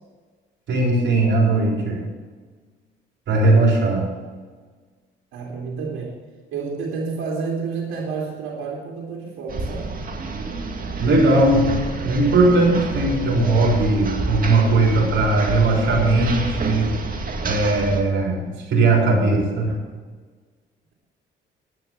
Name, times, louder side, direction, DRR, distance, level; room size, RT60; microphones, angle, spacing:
voice 1, 0.7-2.0 3.3-4.1 11.0-16.9 17.4-19.7, right 2 dB, 70° right, -1 dB, 4.1 m, -18 dB
voice 2, 5.3-6.2 6.5-9.9, right 5 dB, 90° right, -3 dB, 2.8 m, -29 dB
sound 1, 9.5-18.0, right 3 dB, 45° right, 2.2 m, -29 dB
10.5 x 9.5 x 6.9 m, 1.5 s
cardioid pair, 90°, 20 cm